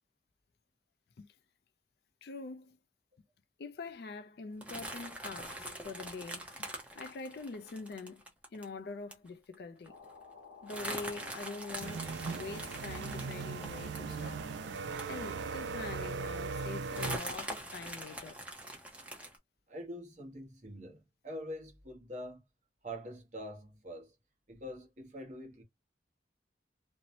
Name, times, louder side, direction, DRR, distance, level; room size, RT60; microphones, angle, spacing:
voice 1, 2.2-2.8 3.6-6.7 6.9-8.2 8.5-10.0 10.6-14.5 15.1-18.4, left 3 dB, 55° left, 0.4 m, -44 dB
sound 1, 4.6-8.6 9.1-9.3 9.5-9.6 9.9-10.1 10.7-15.7 16.1-16.2 16.9-19.4, right 1 dB, 5° right, 0.6 m, -43 dB
sound 2, 9.9-16.7, left 5 dB, 85° left, 0.8 m, -54 dB
sound 3, 11.8-17.2, right 5 dB, 70° right, 0.3 m, -38 dB
voice 2, 19.7-22.4 22.8-24.1 24.5-25.6, equal, 40° right, 0.9 m, -45 dB
2.6 x 2.0 x 2.8 m
head